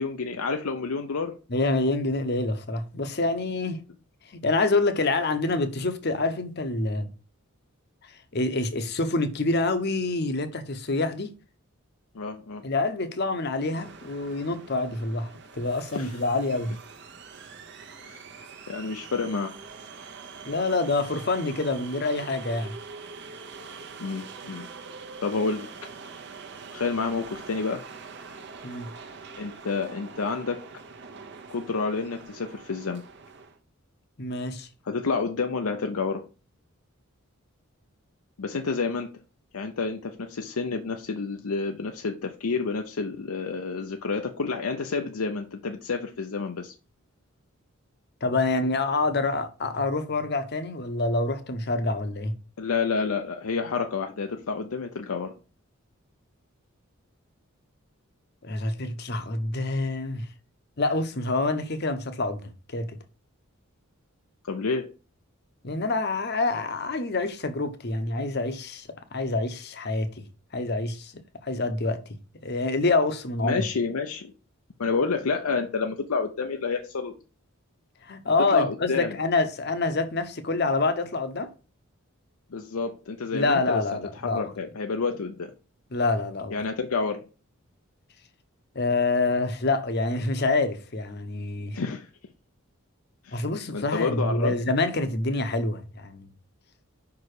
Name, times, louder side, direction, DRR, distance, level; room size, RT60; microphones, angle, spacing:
voice 1, 0.0-1.4 12.1-12.6 15.9-16.2 18.0-18.2 18.7-19.5 24.0-24.7 25.2-25.7 26.7-27.8 29.4-30.6 31.5-33.1 34.9-36.2 38.4-39.1 39.5-46.7 52.6-55.4 64.4-64.9 73.4-74.3 74.8-77.1 78.5-79.1 82.5-83.8 84.2-85.5 86.5-87.3 91.7-92.1 93.2-93.4 93.7-94.5, left 4 dB, 85° left, 0.6 m, -29 dB
voice 2, 1.5-3.8 4.3-7.1 8.0-11.3 12.6-16.7 20.4-22.7 28.6-28.9 34.2-34.7 48.2-52.3 58.4-60.3 60.8-63.0 65.6-70.2 70.5-73.6 78.0-81.5 83.3-84.5 85.9-86.6 88.7-91.8 93.3-96.3, left 2 dB, 50° left, 0.8 m, -27 dB
sound 1, 13.7-33.6, right 5 dB, 50° right, 0.8 m, -44 dB
5.5 x 4.7 x 4.8 m
head